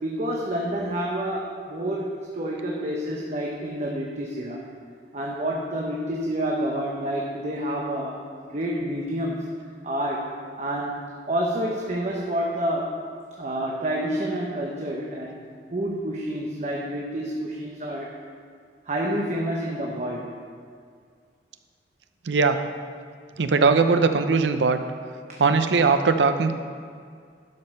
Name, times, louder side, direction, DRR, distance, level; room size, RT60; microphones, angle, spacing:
voice 1, 0.0-4.6 5.1-8.2 8.5-9.4 9.8-10.3 10.6-12.9 13.4-18.1 18.9-20.3 25.3-25.4, right 1 dB, 40° right, -2 dB, 0.9 m, -28 dB
voice 2, 22.3-22.6 23.4-24.8 25.4-26.5, right 4 dB, 85° right, 8 dB, 0.6 m, -20 dB
12.0 x 5.4 x 5.4 m, 2.1 s
head